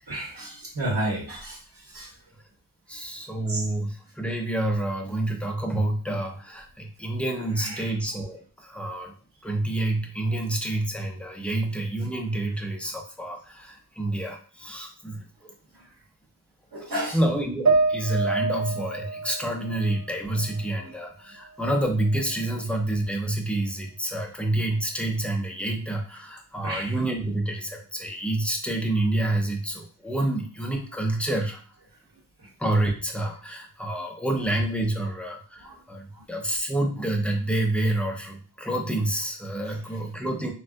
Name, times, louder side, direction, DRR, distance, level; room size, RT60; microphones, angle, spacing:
voice 1, 0.1-2.1 3.5-3.6 7.6-7.9 15.7-15.8 16.7-17.2 20.8-20.9 26.6-26.9 32.4-32.5 35.6-35.8 36.1-36.2 39.6-39.8, right 1 dB, 60° right, -4 dB, 1.1 m, -32 dB
voice 2, 2.9-9.1 9.4-15.5 16.8-16.9 17.1-31.6 32.6-40.5, right 1 dB, 5° left, 2 dB, 0.6 m, -28 dB
sound 1, 17.7-21.1 21.5-22.5, right 3 dB, 45° right, 0.5 m, -28 dB
3.3 x 2.3 x 2.5 m, 0.40 s
wide cardioid pair, 75°, 41 cm